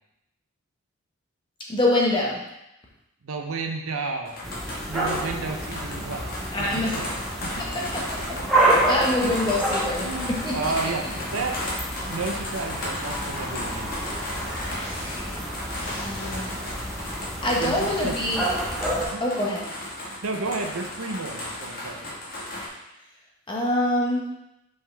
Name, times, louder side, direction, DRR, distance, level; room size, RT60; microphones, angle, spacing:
voice 1, 1.7-2.4 6.5-6.9 7.7-8.0 8.5-10.5 15.9-16.6 17.4-18.5 19.2-19.6 23.5-24.2, left 1 dB, 20° left, -3 dB, 1.1 m, -25 dB
voice 2, 3.2-4.6 4.9-7.1 7.4-7.8 8.2-9.4 10.0-11.6 12.1-14.1 17.6-18.2 19.1-19.2 20.2-22.1, right 3 dB, 70° right, 3 dB, 0.7 m, -32 dB
sound 1, 4.2-22.7, left 1 dB, 45° left, 1.5 m, -35 dB
sound 2, 4.4-19.0, right 2 dB, ahead, 0.9 m, -29 dB
sound 3, 12.5-17.0, equal, 65° left, 1.7 m, -39 dB
5.4 x 5.4 x 3.3 m, 0.88 s
head